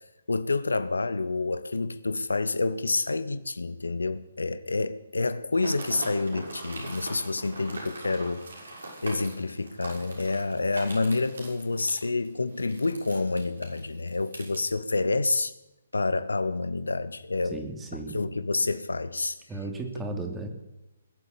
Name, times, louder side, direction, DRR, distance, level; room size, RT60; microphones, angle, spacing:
voice 1, 0.3-8.4 9.0-15.5 15.9-17.6 18.1-19.4, left 3 dB, 80° left, 0.9 m, -28 dB
sound 1, 5.5-14.6, right 2 dB, 75° right, 6.5 m, -41 dB
voice 2, 17.5-18.3 19.5-20.5, right 3 dB, 10° right, 2.8 m, -35 dB
21.0 x 8.1 x 8.5 m
figure-of-eight pair, 135°, 0 cm